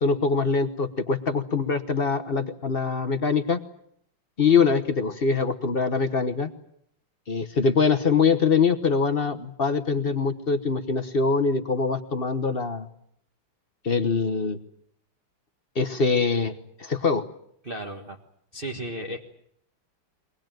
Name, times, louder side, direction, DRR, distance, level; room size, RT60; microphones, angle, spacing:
voice 1, 0.0-3.6 4.4-6.5 7.3-12.9 13.8-14.6 15.7-17.2, left 5 dB, 40° left, 10 dB, 0.9 m, -23 dB
voice 2, 17.6-18.2 18.5-19.2, right 1 dB, 30° right, 0 dB, 1.6 m, -34 dB
23.5 x 19.5 x 9.1 m, 0.70 s
omnidirectional pair, 2.2 m